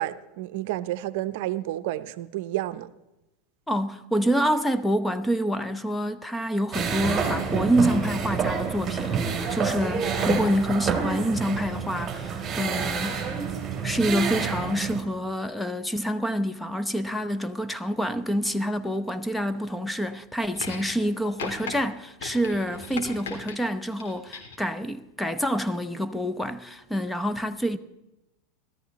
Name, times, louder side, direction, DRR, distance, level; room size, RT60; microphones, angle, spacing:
voice 1, 0.0-2.9, right 15 dB, 65° right, 0.6 m, -30 dB
voice 2, 3.7-13.2 13.8-27.8, equal, 5° left, 0.8 m, -27 dB
sound 1, 6.7-15.0, right 6 dB, 25° right, 2.9 m, -28 dB
sound 2, 20.5-21.1 21.4-21.7 22.2-23.6 24.0-24.6 25.7-25.8, left 5 dB, 75° left, 3.5 m, -38 dB
17.0 x 13.5 x 4.1 m
hypercardioid pair, 105°, 0 cm